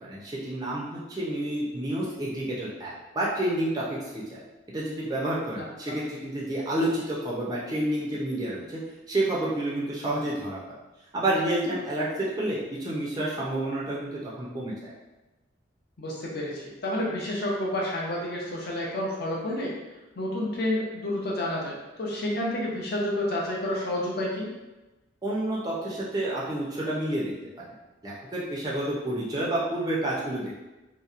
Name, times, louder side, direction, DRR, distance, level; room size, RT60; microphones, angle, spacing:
voice 1, 0.0-4.4 4.7-8.8 9.1-10.6 11.1-14.9 25.2-27.7 28.0-30.5, right 1 dB, 20° right, -6 dB, 0.4 m, -29 dB
voice 2, 5.6-6.0 16.0-19.7 20.2-24.5, left 1 dB, 50° left, -3 dB, 0.5 m, -30 dB
2.7 x 2.0 x 2.4 m, 1.1 s
head